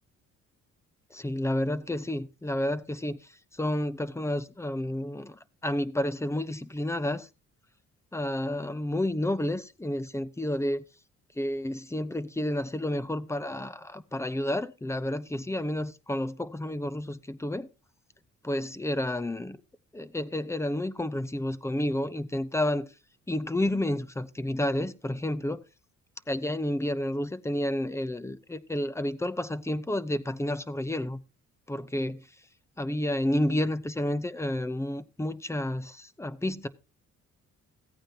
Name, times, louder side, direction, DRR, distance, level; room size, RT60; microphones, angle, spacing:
voice 1, 1.1-7.3 8.1-10.8 11.4-17.7 18.4-19.6 19.9-22.9 23.3-25.6 26.3-31.2 31.7-32.3 32.8-36.7, left 1 dB, 10° left, 0.8 m, -30 dB
16.0 x 9.0 x 2.9 m
cardioid pair, 90°, 30 cm